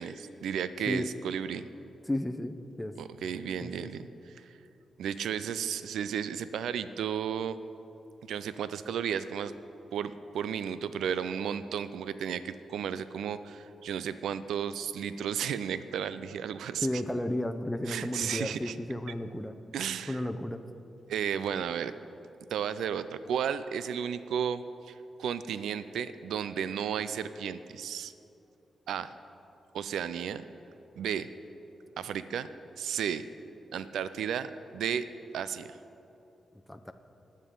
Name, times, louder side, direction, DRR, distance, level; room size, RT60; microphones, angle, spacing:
voice 1, 0.0-1.7 3.0-4.6 5.0-7.6 8.3-9.5 9.9-17.0 17.9-18.8 19.7-20.2 21.1-21.9 22.5-28.1 28.9-29.1 29.7-30.4 31.0-31.3 32.0-32.5 32.8-33.2 33.7-35.1 35.3-35.8, right 8 dB, 80° right, 13 dB, 0.3 m, -33 dB
voice 2, 2.1-2.9 3.6-4.1 16.8-19.5 20.1-20.6 36.7-36.9, left 1 dB, 10° left, 6 dB, 0.8 m, -33 dB
20.5 x 7.4 x 3.8 m, 2.8 s
supercardioid pair, 40°, 0 cm